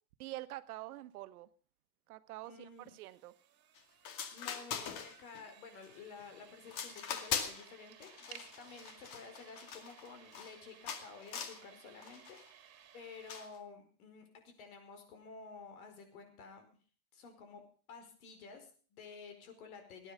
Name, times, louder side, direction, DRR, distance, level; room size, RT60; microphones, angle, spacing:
voice 1, 0.2-1.5 2.1-3.4, right 16 dB, 85° right, 13 dB, 1.2 m, -46 dB
voice 2, 2.4-2.9 4.0-16.6 17.1-17.6 17.9-20.1, left 5 dB, 75° left, 6 dB, 5.1 m, -52 dB
sound 1, 2.7-13.5, right 9 dB, 35° right, 3.0 m, -59 dB
sound 2, 3.8-3.9 4.1-5.4 5.8-6.2 6.7-7.7 8.0-10.6 10.9-11.6 12.0-12.4 13.3-13.6, left 7 dB, 50° left, 2.3 m, -41 dB
19.0 x 9.8 x 5.6 m, 0.41 s
supercardioid pair, 140°, 43 cm